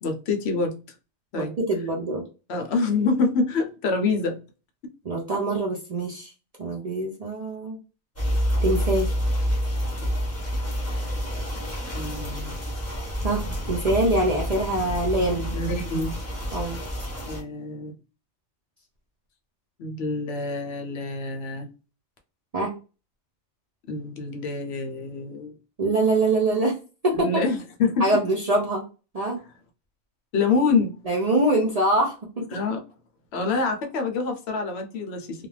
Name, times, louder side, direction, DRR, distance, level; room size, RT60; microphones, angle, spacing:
voice 1, 0.0-0.7 1.3-1.5 2.5-4.4 11.9-12.6 15.5-16.1 17.3-17.9 19.8-21.7 23.9-25.5 27.1-28.0 30.3-31.0 32.5-32.8 33.3-35.5, left 4 dB, 60° left, 0.8 m, -26 dB
voice 2, 1.4-2.2 5.0-6.3 6.6-7.8 8.6-9.1 13.2-13.4 13.7-15.5 16.5-16.8 22.5-22.7 25.8-26.8 27.0-27.4 28.0-28.8 29.1-29.4 31.1-32.1, right 2 dB, 70° right, 0.3 m, -24 dB
sound 1, 8.2-17.4, equal, 15° left, 0.7 m, -28 dB
2.4 x 2.2 x 3.1 m
omnidirectional pair, 1.4 m